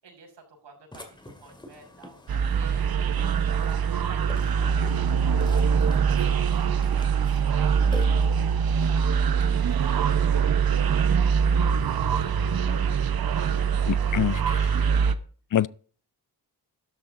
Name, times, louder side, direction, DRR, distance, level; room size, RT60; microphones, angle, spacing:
voice 1, 0.0-6.4 7.5-11.3 12.9-15.2, right 5 dB, 85° right, 6.3 m, -49 dB
Burping eructation, 0.9-10.0, left 2 dB, 10° left, 2.2 m, -47 dB
sound 1, 2.3-15.1, right 7 dB, 60° right, 1.0 m, -23 dB
voice 2, 13.9-14.4 15.5-15.7, left 10 dB, 50° left, 0.5 m, -24 dB
13.0 x 12.0 x 3.8 m
wide cardioid pair, 160°, 41 cm